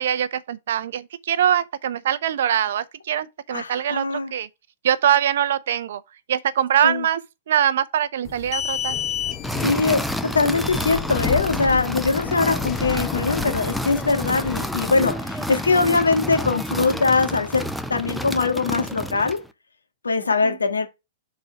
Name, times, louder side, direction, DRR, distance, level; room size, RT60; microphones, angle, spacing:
voice 1, 0.0-4.5 4.8-6.0 6.3-7.2 7.5-9.0 15.7-15.9 20.4-20.6, right 10 dB, 65° right, 0.8 m, -23 dB
voice 2, 3.5-4.3 6.8-7.0 9.6-19.4 20.0-20.9, left 4 dB, 90° left, 1.6 m, -22 dB
sound 1, 8.2-15.1, left 9 dB, 30° left, 0.9 m, -31 dB
sound 2, 9.4-19.5, equal, ahead, 0.7 m, -29 dB
6.1 x 4.3 x 4.9 m
hypercardioid pair, 110°, 0 cm